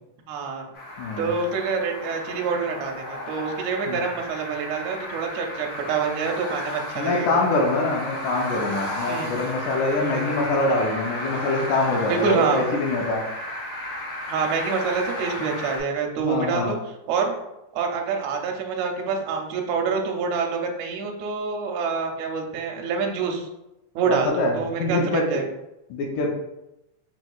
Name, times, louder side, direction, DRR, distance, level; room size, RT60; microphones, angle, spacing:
voice 1, 0.3-0.7 1.2-7.4 9.1-9.4 10.0-10.3 12.0-12.6 14.3-16.8 17.1-17.4 17.7-23.5 23.9-25.4, right 5 dB, 80° right, 2 dB, 1.6 m, -26 dB
sound 1, 0.7-15.8, left 1 dB, 65° left, 1.7 m, -33 dB
voice 2, 1.0-1.3 3.9-4.1 7.0-13.2 16.2-16.7 24.1-25.3 25.9-26.3, left 2 dB, 80° left, 0 dB, 2.1 m, -24 dB
6.1 x 2.9 x 2.3 m, 0.90 s
omnidirectional pair, 3.5 m